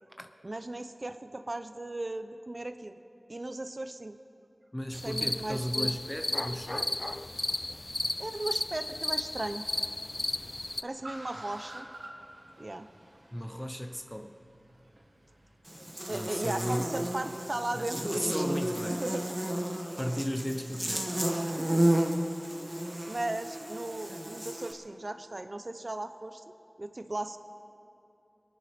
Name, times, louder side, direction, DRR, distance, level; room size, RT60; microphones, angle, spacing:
voice 1, 0.4-3.0 3.3-4.2 4.9-6.0 8.2-9.7 10.8-11.9 12.6-12.9 16.1-18.6 18.9-19.4 21.4-21.9 22.4-22.6 23.1-26.4 26.8-27.4, right 2 dB, 50° right, 9 dB, 0.8 m, -37 dB
voice 2, 4.7-6.9 13.3-14.4 16.1-17.1 17.7-19.0 20.0-21.1, equal, 10° left, 5 dB, 0.8 m, -35 dB
sound 1, 4.9-10.8, left 2 dB, 40° left, 0.3 m, -34 dB
Car, 8.2-15.6, right 1 dB, 85° right, 2.0 m, -51 dB
Buzz, 15.7-24.7, right 1 dB, 20° right, 1.6 m, -32 dB
26.0 x 9.6 x 5.2 m, 2.7 s
wide cardioid pair, 50°, 0 cm